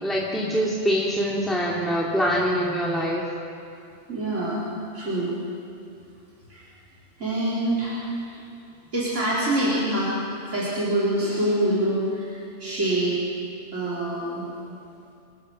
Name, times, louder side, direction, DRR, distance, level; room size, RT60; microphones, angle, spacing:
voice 1, 0.0-3.2, equal, ahead, -4 dB, 2.3 m, -24 dB
voice 2, 4.1-4.7 4.9-5.4 6.5-6.7 7.2-8.4 8.9-10.1 10.4-13.2 13.7-14.5, right 1 dB, 85° right, -8 dB, 4.2 m, -25 dB
27.5 x 17.5 x 6.5 m, 2.6 s
omnidirectional pair, 1.2 m